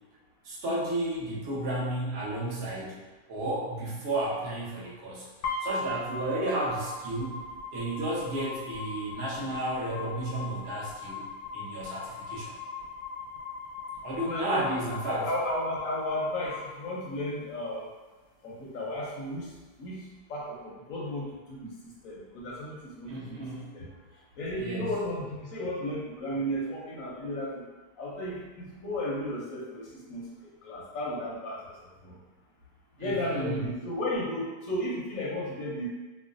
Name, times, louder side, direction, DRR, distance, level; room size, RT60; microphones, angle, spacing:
voice 1, 0.4-3.0 3.3-5.3 5.6-7.4 7.7-11.2 11.5-12.5 14.0-15.3 23.1-23.7 24.6-24.9 33.0-33.7, right 1 dB, 50° right, -6 dB, 0.8 m, -32 dB
sound 1, 5.4-17.4, left 3 dB, 85° left, 1.3 m, -39 dB
voice 2, 14.2-17.8 18.4-19.5 19.8-20.0 20.3-21.7 22.0-23.4 23.7-23.9 24.4-27.6 28.0-30.3 30.6-31.6 32.0-32.1 33.0-35.9, left 1 dB, 65° left, -4 dB, 0.9 m, -34 dB
4.5 x 2.2 x 2.5 m, 1.2 s
omnidirectional pair, 1.9 m